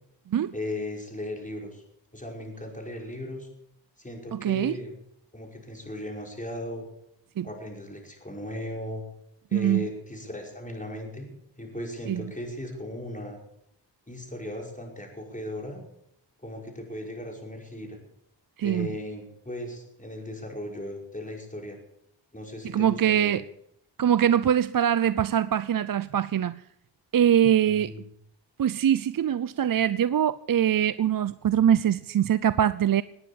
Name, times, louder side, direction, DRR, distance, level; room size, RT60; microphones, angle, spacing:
voice 1, 0.5-1.8 2.1-3.5 4.0-4.9 5.3-6.8 7.4-9.0 9.5-11.3 11.6-13.4 14.1-15.8 16.4-18.0 18.6-21.8 22.3-23.4 27.7-28.1, left 1 dB, 15° left, 5.4 m, -37 dB
voice 2, 4.3-4.8 7.4-7.5 9.5-9.9 12.1-12.3 18.6-18.9 22.6-23.4 24.0-26.6 27.1-27.9 28.6-33.0, right 10 dB, 50° right, 0.5 m, -23 dB
19.0 x 9.6 x 7.1 m
cardioid pair, 50°, 45 cm